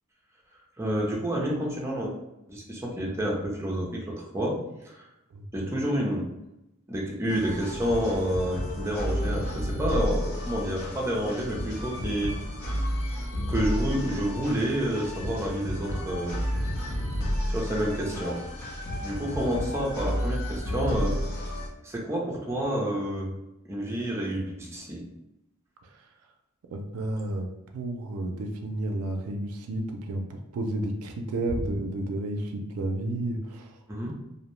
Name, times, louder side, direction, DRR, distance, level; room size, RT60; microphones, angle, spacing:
voice 1, 0.8-2.1 2.5-5.0 5.5-6.3 6.9-12.3 13.5-16.4 17.5-18.4 19.0-21.2 21.8-23.3 23.7-25.0 33.9-34.1, equal, 15° right, -3 dB, 0.5 m, -29 dB
voice 2, 5.3-5.7 25.8-26.1 26.7-27.5 27.7-33.8, right 1 dB, 90° right, 4 dB, 0.4 m, -32 dB
sound 1, 7.3-21.7, equal, 70° left, 0.6 m, -31 dB
2.6 x 2.0 x 3.0 m, 0.91 s
head